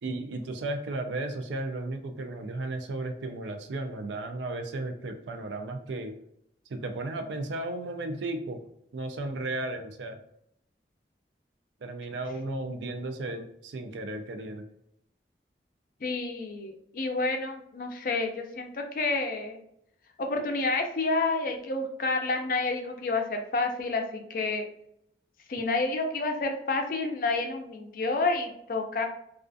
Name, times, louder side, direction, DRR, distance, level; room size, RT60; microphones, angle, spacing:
voice 1, 0.0-6.1 6.7-8.6 8.9-10.2 11.8-14.7, right 2 dB, 90° right, 6 dB, 0.4 m, -34 dB
voice 2, 16.0-19.6 20.2-24.6 25.5-29.1, left 3 dB, 50° left, 4 dB, 0.4 m, -29 dB
2.4 x 2.3 x 2.5 m, 0.73 s
head